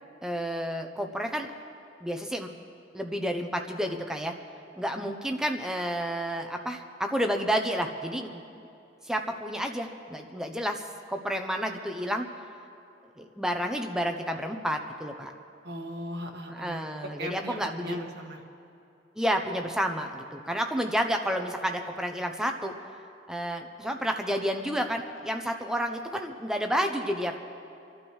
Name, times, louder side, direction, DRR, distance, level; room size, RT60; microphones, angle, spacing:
voice 1, 0.2-1.5 2.0-2.5 2.9-4.3 4.8-8.4 9.1-10.8 11.1-12.3 13.2-15.3 16.5-18.0 19.2-22.7 23.3-27.4, equal, 5° right, 4 dB, 0.7 m, -30 dB
voice 2, 15.6-16.9 17.2-18.4, equal, 65° right, 0 dB, 1.6 m, -38 dB
29.5 x 12.0 x 3.2 m, 2.7 s
head